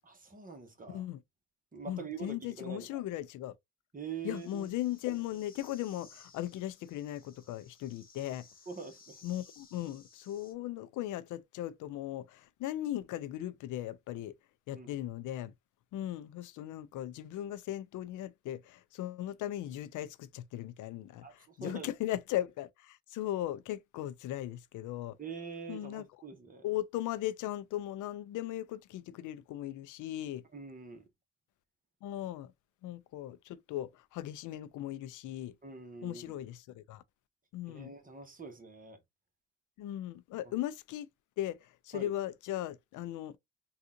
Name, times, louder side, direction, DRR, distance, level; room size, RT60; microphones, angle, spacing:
voice 1, 0.0-1.0 1.7-3.0 3.9-4.7 8.7-9.2 14.7-14.9 21.2-21.9 25.2-26.6 30.5-31.0 35.6-36.4 37.7-39.0 41.9-42.1, right 5 dB, 30° right, 1.1 m, -44 dB
voice 2, 0.9-1.2 1.9-3.5 4.2-8.5 9.2-14.3 14.7-15.5 15.9-25.2 25.7-26.1 26.6-30.5 32.0-32.5 32.8-35.5 36.0-37.0 37.5-37.9 39.8-41.1 41.4-43.4, left 13 dB, 80° left, 0.5 m, -38 dB
sound 1, 4.3-10.5, left 4 dB, 30° left, 1.1 m, -59 dB
3.6 x 2.4 x 2.5 m
cardioid pair, 90°, 30 cm